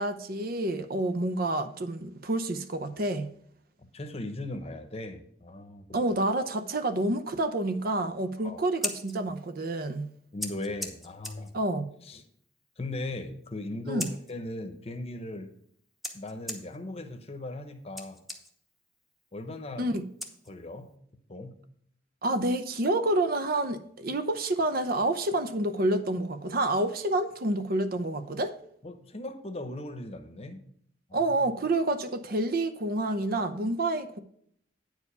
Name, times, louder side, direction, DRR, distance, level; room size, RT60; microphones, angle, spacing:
voice 1, 0.0-3.3 5.9-10.1 11.5-11.8 13.8-14.1 19.8-20.0 22.2-28.5 31.1-34.2, right 2 dB, 50° right, 0.8 m, -28 dB
voice 2, 3.8-6.0 8.4-8.7 10.3-11.5 12.0-12.2 12.8-15.5 16.1-18.2 19.3-19.9 20.5-20.9 21.3-21.5 28.8-30.6 31.1-31.5, left 2 dB, 35° left, 0.9 m, -38 dB
Scissors, 8.6-21.0, left 1 dB, ahead, 1.0 m, -44 dB
9.5 x 4.9 x 6.7 m
head